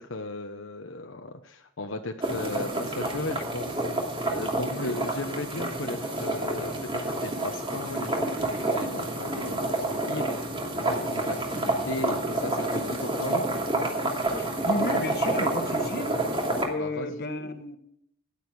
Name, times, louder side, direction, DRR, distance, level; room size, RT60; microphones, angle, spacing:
voice 1, 0.0-3.8 4.3-10.5 10.9-13.4 16.8-17.1, left 2 dB, 75° left, 4 dB, 1.0 m, -36 dB
sound 1, 2.2-16.6, right 2 dB, 25° right, 2.8 m, -29 dB
voice 2, 14.4-16.1 16.6-17.8, left 2 dB, 55° left, 8 dB, 1.5 m, -33 dB
15.5 x 10.0 x 4.8 m, 0.74 s
head